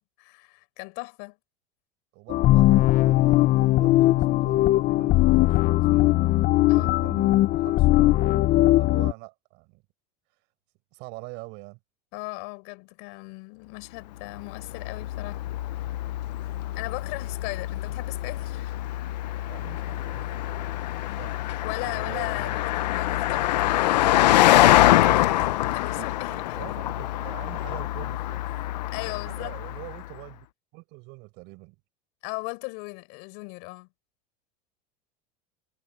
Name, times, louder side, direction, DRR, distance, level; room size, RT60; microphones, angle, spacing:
voice 1, 0.0-1.4 6.7-6.9 12.1-15.4 16.8-18.8 21.6-24.4 25.1-25.2 25.7-26.7 28.9-29.6 32.2-33.9, left 33 dB, 65° left, 5.1 m, -37 dB
voice 2, 2.1-6.1 6.7-7.3 7.6-9.8 10.9-11.8 16.6-16.8 19.5-20.8 21.1-21.4 21.7-22.6 25.0-25.5 26.0-28.4 29.1-30.5 30.7-31.8, right 27 dB, 60° right, 6.1 m, -44 dB
sound 1, 2.3-9.1, left 16 dB, 45° left, 0.8 m, -19 dB
Car passing by, 14.3-30.1, left 15 dB, 85° left, 1.0 m, -25 dB
supercardioid pair, 115°, 21 cm